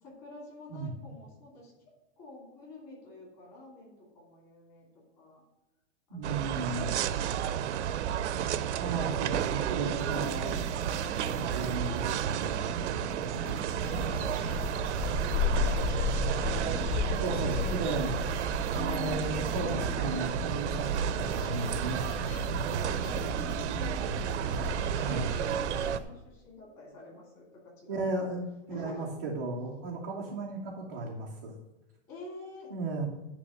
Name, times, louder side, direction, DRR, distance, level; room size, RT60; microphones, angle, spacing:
voice 1, 0.0-1.7 2.2-4.9 5.2-5.4 6.1-7.9 12.8-14.7 15.4-19.5 23.3-24.1 24.6-28.2 28.7-29.1 32.1-32.7, left 2 dB, 25° left, -3 dB, 2.7 m, -48 dB
voice 2, 6.1-6.9 8.8-10.5 11.2-12.6 17.2-18.1 18.7-22.9 25.0-25.3 27.9-31.5 32.7-33.0, right 3 dB, 15° right, -5 dB, 0.4 m, -35 dB
sound 1, 6.2-26.0, right 9 dB, 70° right, 0.6 m, -32 dB
sound 2, 10.0-24.8, equal, 80° left, 2.1 m, -44 dB
sound 3, 13.8-26.0, left 4 dB, 55° left, 3.1 m, -35 dB
9.7 x 3.4 x 6.5 m, 1.1 s
supercardioid pair, 175°, 37 cm